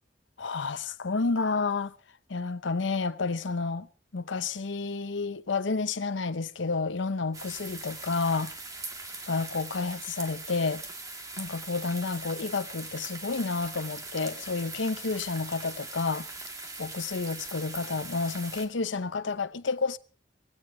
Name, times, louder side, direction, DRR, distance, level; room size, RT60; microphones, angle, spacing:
voice 1, 0.4-1.9 2.3-3.9 4.1-8.5 9.3-10.8 11.4-16.3 16.8-20.0, left 4 dB, 85° left, 0.8 m, -30 dB
Rain Falling On Ground, 7.3-18.7, right 3 dB, 20° right, 2.0 m, -41 dB
18.5 x 16.5 x 3.9 m
head